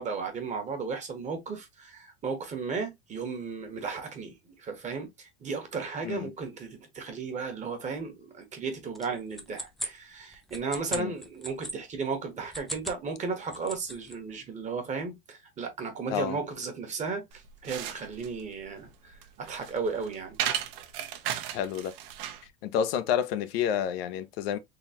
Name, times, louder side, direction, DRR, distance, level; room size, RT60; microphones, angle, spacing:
voice 1, 0.0-20.4, right 5 dB, 20° right, 1.3 m, -35 dB
sound 1, 8.9-11.8 12.4-13.0 13.3-14.2, equal, ahead, 0.3 m, -38 dB
sound 2, 17.3-22.5, right 11 dB, 65° right, 0.9 m, -35 dB
voice 2, 21.5-21.9 22.6-24.6, left 9 dB, 65° left, 0.6 m, -29 dB
3.9 x 2.9 x 2.8 m
supercardioid pair, 145°, 32 cm